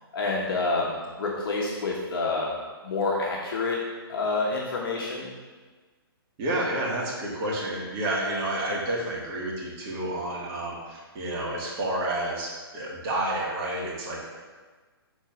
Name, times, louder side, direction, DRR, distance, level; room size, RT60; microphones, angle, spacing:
voice 1, 0.1-2.5 2.8-3.8 4.1-5.3, left 3 dB, 60° left, -3 dB, 1.3 m, -28 dB
voice 2, 6.4-14.3, right 1 dB, 35° right, -4 dB, 2.1 m, -30 dB
7.0 x 4.1 x 5.9 m, 1.4 s
hypercardioid pair, 145°, 13 cm